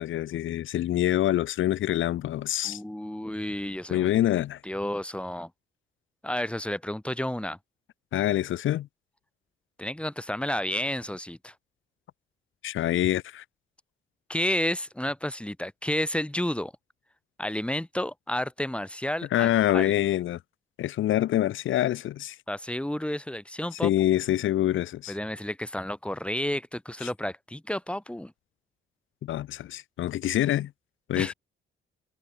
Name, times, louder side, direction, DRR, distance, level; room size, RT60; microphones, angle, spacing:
voice 1, 0.0-2.8 3.9-4.6 8.1-8.9 12.6-13.4 19.3-20.4 20.8-22.4 23.8-25.2 29.2-30.7 31.1-31.3, left 13 dB, 80° left, 5.3 m, -25 dB
voice 2, 2.6-4.1 4.6-5.5 6.2-7.6 9.8-11.5 14.3-16.7 17.4-19.5 19.7-19.9 22.5-23.9 25.1-28.3 31.2-31.3, left 1 dB, 5° left, 5.5 m, -31 dB
cardioid pair, 90°, 20 cm